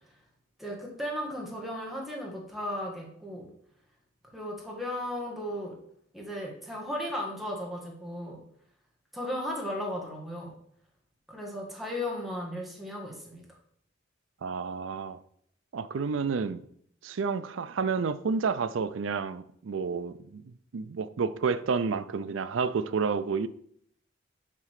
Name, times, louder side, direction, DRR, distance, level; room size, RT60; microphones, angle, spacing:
voice 1, 0.6-3.5 4.3-5.8 6.1-8.4 9.1-10.5 11.3-13.4, left 1 dB, ahead, 1.6 m, -35 dB
voice 2, 14.4-15.2 15.7-16.6 17.0-23.5, right 5 dB, 75° right, 0.4 m, -30 dB
7.5 x 3.8 x 6.5 m
head